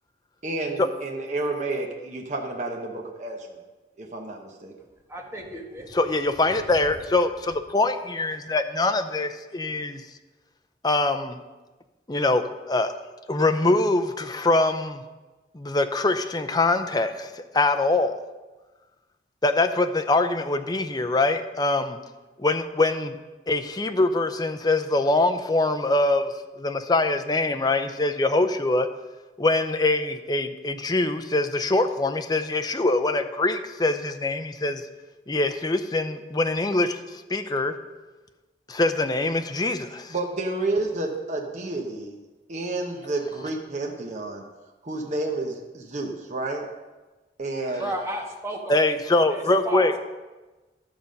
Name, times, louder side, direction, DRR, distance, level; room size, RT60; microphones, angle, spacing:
voice 1, 0.4-3.6 4.0-4.7 40.1-42.2 42.5-44.4 44.8-46.6 47.4-47.9, right 2 dB, 40° right, 1 dB, 1.0 m, -30 dB
voice 2, 5.1-6.2 47.8-49.9, right 1 dB, 15° right, 1 dB, 1.3 m, -34 dB
voice 3, 5.9-10.0 10.8-11.4 12.1-12.9 13.3-15.0 15.5-18.2 19.4-22.0 22.4-23.2 23.5-28.9 29.4-34.8 35.3-37.8 38.7-40.1 48.7-50.0, left 2 dB, 25° left, 8 dB, 0.6 m, -23 dB
11.5 x 7.0 x 5.3 m, 1.2 s
head